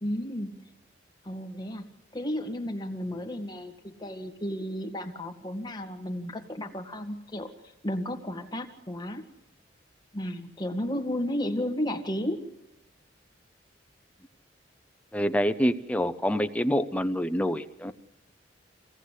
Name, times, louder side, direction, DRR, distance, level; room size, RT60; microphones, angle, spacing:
voice 1, 0.0-0.8 1.2-1.9 2.1-9.2 10.1-12.5, left 1 dB, 25° left, 3 dB, 1.9 m, -33 dB
voice 2, 15.1-17.9, equal, 10° left, 10 dB, 0.7 m, -26 dB
25.5 x 17.5 x 8.3 m, 0.97 s
head